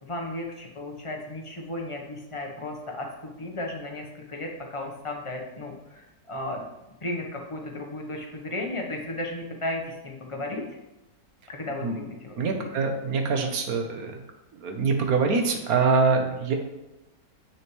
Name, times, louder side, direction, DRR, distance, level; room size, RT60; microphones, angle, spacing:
voice 1, 0.0-3.1 3.4-6.6 7.0-10.6 11.5-12.7, left 1 dB, 25° left, 0 dB, 0.7 m, -34 dB
voice 2, 12.4-14.2 14.5-16.5, right 4 dB, 60° right, 4 dB, 1.3 m, -24 dB
7.4 x 6.3 x 3.1 m, 1.0 s
omnidirectional pair, 1.8 m